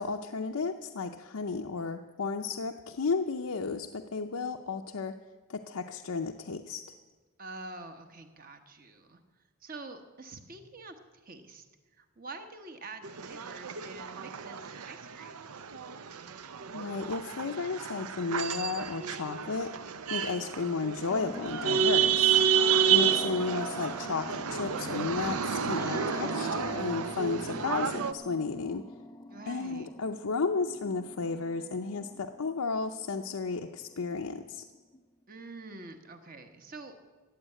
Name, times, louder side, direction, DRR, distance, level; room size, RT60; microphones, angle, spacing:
voice 1, 0.0-5.1 5.5-6.9 16.7-19.7 20.1-22.4 22.9-28.8 29.5-34.7, left 4 dB, 85° left, 4 dB, 0.6 m, -33 dB
voice 2, 7.4-9.2 9.6-11.7 11.9-15.5 22.7-23.1 29.3-29.9 35.3-36.9, right 3 dB, 40° right, 6 dB, 1.2 m, -46 dB
sound 1, 13.0-28.1, right 7 dB, 85° right, 0.7 m, -30 dB
sound 2, 21.1-35.0, left 1 dB, 20° left, 0.4 m, -45 dB
15.5 x 8.4 x 9.0 m, 1.3 s
head